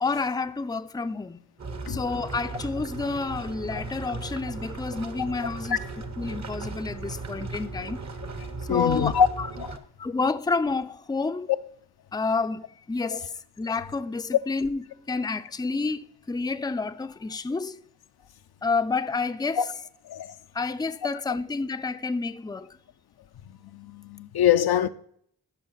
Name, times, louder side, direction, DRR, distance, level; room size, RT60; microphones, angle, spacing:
voice 1, 0.0-1.4 1.9-5.8 6.2-8.0 8.7-9.5 10.0-11.5 12.1-17.8 18.6-19.7 20.5-22.8, left 4 dB, 10° left, 0.4 m, -29 dB
sound 1, 1.6-9.8, right 3 dB, 50° right, 1.0 m, -37 dB
voice 2, 8.7-9.3 9.6-9.7 19.6-19.7 20.1-20.3 23.7-24.9, left 9 dB, 80° left, 0.5 m, -23 dB
13.5 x 5.5 x 3.9 m
cardioid pair, 40°, 37 cm